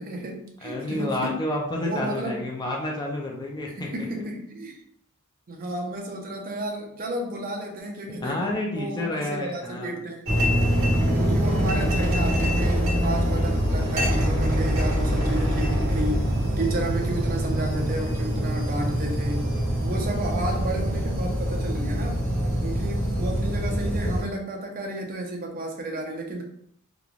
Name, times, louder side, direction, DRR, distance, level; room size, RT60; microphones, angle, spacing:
voice 1, 0.0-1.4 1.8-2.5 3.8-4.8 5.5-8.5 8.8-10.3 11.1-16.3 16.6-22.2 22.6-26.4, right 1 dB, 40° right, 1 dB, 0.5 m, -32 dB
voice 2, 0.6-4.1 8.1-10.0 10.9-11.5, left 1 dB, 20° left, -1 dB, 0.4 m, -30 dB
sound 1, 10.3-24.2, equal, 65° right, 1.1 m, -24 dB
3.1 x 2.1 x 2.4 m, 0.69 s
head